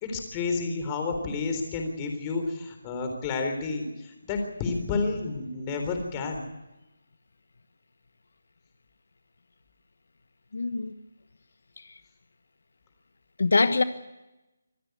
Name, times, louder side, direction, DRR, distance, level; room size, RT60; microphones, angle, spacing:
voice 1, 0.0-6.4, left 4 dB, 15° left, 5 dB, 3.8 m, -30 dB
voice 2, 10.5-10.9 11.8-11.9 13.4-13.8, left 3 dB, 65° left, 11 dB, 1.2 m, -23 dB
26.0 x 16.0 x 8.0 m, 0.99 s
hypercardioid pair, 170°, 0 cm